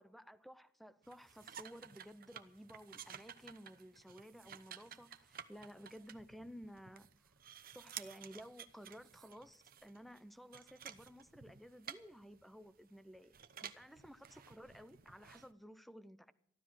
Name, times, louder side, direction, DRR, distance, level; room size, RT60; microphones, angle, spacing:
voice 1, 0.0-7.3 7.7-13.4 13.6-16.3, equal, ahead, 0.7 m, -55 dB
sound 1, 1.0-15.5, right 9 dB, 50° right, 0.8 m, -54 dB
15.0 x 12.5 x 6.2 m
head